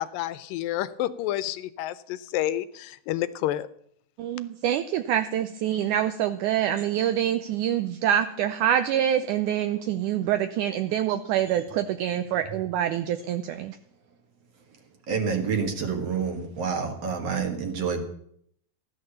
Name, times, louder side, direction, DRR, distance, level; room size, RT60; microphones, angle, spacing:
voice 1, 0.0-3.7, left 13 dB, 80° left, 15 dB, 2.3 m, -29 dB
voice 2, 4.2-13.8, right 10 dB, 80° right, 9 dB, 1.8 m, -26 dB
voice 3, 15.1-18.0, right 6 dB, 50° right, 4 dB, 2.5 m, -28 dB
16.0 x 11.0 x 6.9 m, 0.67 s
omnidirectional pair, 4.2 m